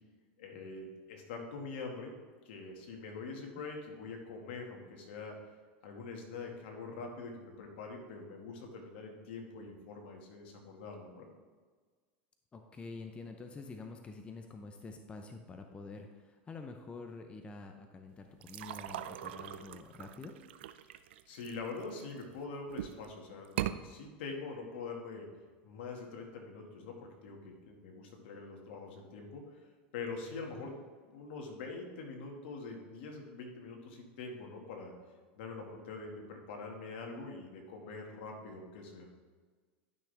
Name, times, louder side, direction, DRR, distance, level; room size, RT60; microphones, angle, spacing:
voice 1, 0.4-2.1 2.5-5.4 5.8-11.3 21.3-25.3 25.6-29.4 29.9-30.7 31.0-34.9 35.4-39.1, left 4 dB, 75° left, 2 dB, 2.0 m, -44 dB
voice 2, 12.5-20.3 30.6-30.7, left 3 dB, 20° left, 5 dB, 0.7 m, -47 dB
sound 1, 18.4-22.2 22.7-23.1 23.4-23.8, right 12 dB, 80° right, 0.4 m, -40 dB
12.0 x 6.0 x 3.5 m, 1.5 s
supercardioid pair, 125°, 6 cm